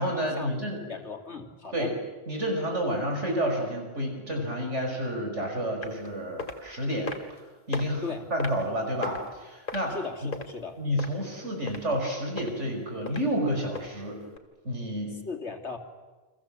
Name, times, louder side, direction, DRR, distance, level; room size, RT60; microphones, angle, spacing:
voice 1, 0.0-0.8 1.7-1.9 2.3-7.1 7.7-8.0 8.3-10.0 10.2-10.3 10.8-14.2 14.6-15.2, equal, 90° right, 2 dB, 6.0 m, -30 dB
voice 2, 0.9-2.0 8.0-8.3 9.9-10.8 15.2-15.8, left 4 dB, 75° left, 4 dB, 3.1 m, -37 dB
sound 1, 5.8-6.1 6.4-6.6 7.1-7.4 7.7-7.8 8.4-8.7 9.0-9.3 9.7-10.5 11.0-11.3 11.7-11.8 12.4-12.5 13.1-13.2 13.7-13.9 14.4-14.5, left 4 dB, 45° left, 2.4 m, -35 dB
30.0 x 25.0 x 7.6 m, 1.3 s
omnidirectional pair, 1.2 m